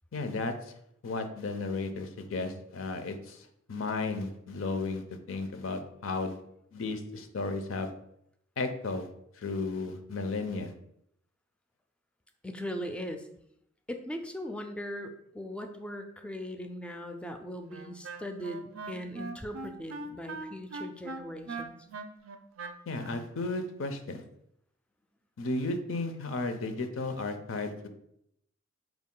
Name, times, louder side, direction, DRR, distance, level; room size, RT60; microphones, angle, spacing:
voice 1, 0.1-0.5 1.0-3.4 3.7-5.0 5.3-6.4 6.7-7.9 8.6-9.1 9.4-10.7 22.9-24.2 25.4-27.9, left 3 dB, 80° left, 7 dB, 0.5 m, -34 dB
voice 2, 12.4-13.3 13.9-21.8, equal, 5° left, 6 dB, 0.3 m, -39 dB
Wind instrument woodwind instrument, 17.7-23.3, right 3 dB, 85° right, 0.4 m, -41 dB
4.6 x 2.3 x 3.7 m, 0.74 s
head